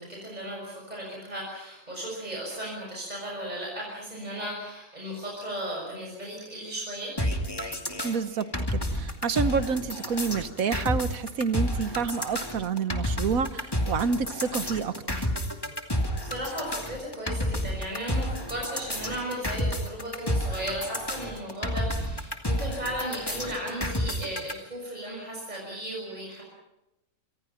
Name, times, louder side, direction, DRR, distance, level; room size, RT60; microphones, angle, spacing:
voice 1, 0.0-7.1 16.2-26.4, right 1 dB, 30° right, -2 dB, 6.5 m, -35 dB
sound 1, 7.2-24.5, equal, 15° left, 2.4 m, -30 dB
voice 2, 8.0-15.3, right 5 dB, 70° right, 12 dB, 1.5 m, -29 dB
27.0 x 26.5 x 5.9 m, 0.96 s
omnidirectional pair, 1.5 m